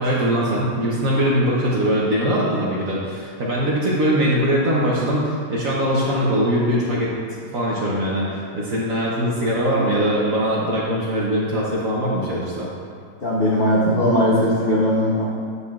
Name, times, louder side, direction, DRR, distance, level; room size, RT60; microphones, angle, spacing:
voice 1, 0.0-7.1 7.4-12.7, equal, 60° right, -5 dB, 0.9 m, -21 dB
voice 2, 13.2-15.2, equal, 85° left, -7 dB, 0.5 m, -19 dB
8.2 x 6.7 x 2.3 m, 2.2 s
omnidirectional pair, 2.3 m